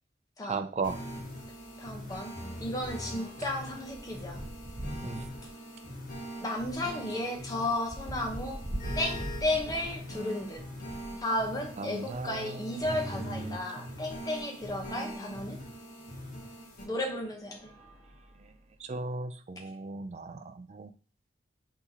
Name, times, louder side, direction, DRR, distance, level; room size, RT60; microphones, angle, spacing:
voice 1, 0.4-1.0 5.0-5.2 11.8-12.5 13.3-13.6 18.9-20.9, right 3 dB, 35° right, 10 dB, 0.3 m, -36 dB
sound 1, 0.8-16.8, equal, 45° left, 1.2 m, -42 dB
sound 2, 0.8-0.9 1.3-1.4 1.8-11.2 12.0-13.3 14.0-14.1 14.3-14.4 16.1-16.3 16.9-17.1 17.5-18.8, right 1 dB, 50° right, 1.4 m, -44 dB
voice 2, 1.8-2.3 2.6-4.4 6.4-8.6 8.9-10.6 11.2-15.6 16.9-17.6, left 1 dB, 20° left, 0 dB, 0.9 m, -33 dB
5.8 x 2.9 x 2.8 m, 0.39 s
head